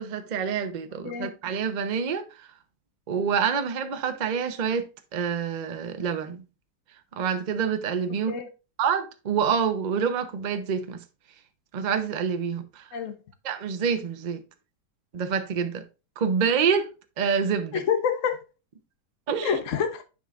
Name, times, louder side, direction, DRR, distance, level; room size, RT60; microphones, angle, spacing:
voice 1, 0.0-2.5 3.1-6.4 7.1-8.3 8.8-11.0 11.7-12.9 13.4-14.4 15.1-15.8 16.2-16.9 17.2-17.8 19.3-19.6, right 6 dB, 50° right, 0.5 m, -27 dB
voice 2, 17.7-18.4 19.4-20.0, left 7 dB, 55° left, 1.2 m, -27 dB
9.6 x 5.4 x 2.5 m
omnidirectional pair, 1.9 m